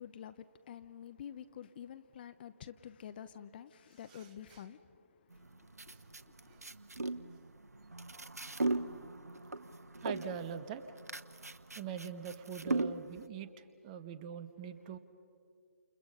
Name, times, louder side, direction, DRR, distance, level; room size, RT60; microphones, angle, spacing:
voice 1, 0.0-6.7, left 9 dB, 40° left, 0.7 m, -49 dB
voice 2, 4.1-4.6 5.9-6.0 6.5-6.6 10.0-11.0 11.8-15.0, right 8 dB, 25° right, 1.2 m, -43 dB
sound 1, 5.3-13.3, right 2 dB, 85° right, 1.0 m, -39 dB
29.5 x 29.0 x 5.5 m
figure-of-eight pair, 140°, 8 cm